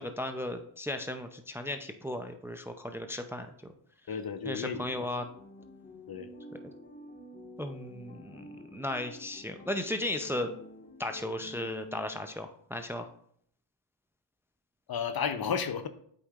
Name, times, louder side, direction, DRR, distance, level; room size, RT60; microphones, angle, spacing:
voice 1, 0.0-3.7 4.4-5.3 7.6-10.5 11.0-13.1, left 1 dB, 5° right, 7 dB, 0.5 m, -36 dB
voice 2, 4.1-5.1 6.1-6.3 14.9-15.9, left 6 dB, 50° left, 10 dB, 0.7 m, -33 dB
sound 1, 5.2-12.4, left 1 dB, 20° left, 1.5 m, -49 dB
8.2 x 5.2 x 2.4 m, 0.65 s
cardioid pair, 65°, 49 cm